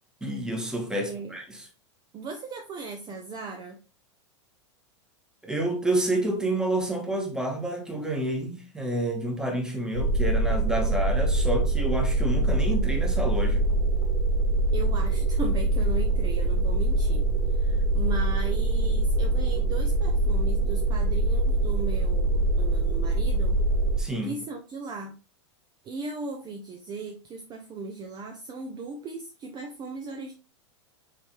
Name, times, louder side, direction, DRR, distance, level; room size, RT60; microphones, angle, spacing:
voice 1, 0.2-1.7 5.4-13.7 24.0-24.4, right 1 dB, 5° right, 1.1 m, -29 dB
voice 2, 0.9-1.4 2.1-3.8 14.7-23.6 24.2-25.2 25.8-30.3, right 3 dB, 25° right, 0.5 m, -37 dB
sound 1, 9.9-24.0, right 2 dB, 80° right, 1.0 m, -24 dB
4.7 x 3.2 x 3.1 m
hypercardioid pair, 95°, 15 cm